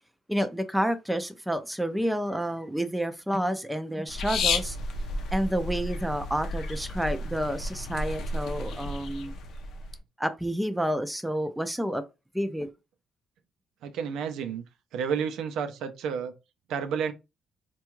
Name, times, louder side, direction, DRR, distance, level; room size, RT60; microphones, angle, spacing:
voice 1, 0.3-4.8 5.3-9.4 10.2-12.0 12.3-12.7, equal, 5° right, 0.4 m, -29 dB
sound 1, 4.1-10.0, left 2 dB, 75° left, 0.5 m, -32 dB
voice 2, 13.8-14.6 14.9-16.3 16.7-17.1, right 7 dB, 85° right, 0.4 m, -30 dB
3.5 x 2.3 x 3.0 m
cardioid pair, 120°, 0 cm